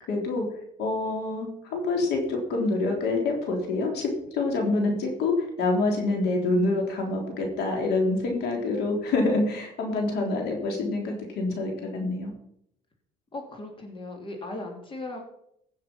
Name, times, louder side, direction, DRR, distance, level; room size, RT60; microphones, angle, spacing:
voice 1, 0.1-0.5 0.8-12.3, left 2 dB, 80° left, 2 dB, 3.6 m, -26 dB
voice 2, 13.3-15.2, left 2 dB, 30° left, 2 dB, 2.8 m, -37 dB
15.5 x 6.6 x 5.6 m, 0.73 s
cardioid pair, 110°, 17 cm